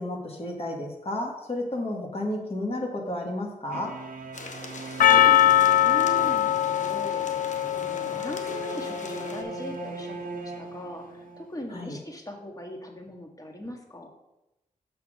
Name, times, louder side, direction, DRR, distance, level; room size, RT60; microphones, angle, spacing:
voice 1, 0.0-4.0 11.7-12.0, left 1 dB, 40° left, -1 dB, 1.9 m, -32 dB
sound 1, 3.7-11.5, right 5 dB, 70° right, 0.8 m, -40 dB
sound 2, 4.3-9.4, left 3 dB, 60° left, 1.0 m, -42 dB
voice 2, 4.7-7.3 7.7-14.1, equal, 25° left, 2 dB, 1.8 m, -40 dB
Percussion, 5.0-9.5, left 11 dB, 75° left, 0.4 m, -22 dB
6.1 x 5.6 x 6.5 m, 0.95 s
cardioid pair, 60°, 14 cm